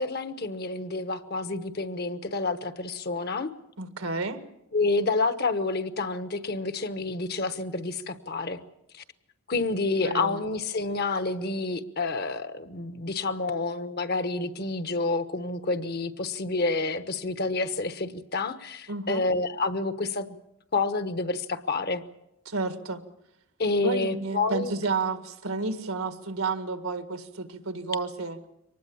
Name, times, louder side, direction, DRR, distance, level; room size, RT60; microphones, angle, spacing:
voice 1, 0.0-3.5 4.7-8.6 8.9-9.0 9.5-20.4 20.7-22.0 23.6-24.7, left 3 dB, 50° left, 11 dB, 1.1 m, -29 dB
voice 2, 3.8-4.4 10.0-10.4 18.9-19.3 22.5-23.0 23.8-28.4, right 3 dB, 85° right, 9 dB, 1.9 m, -31 dB
24.0 x 19.5 x 7.2 m, 0.83 s
head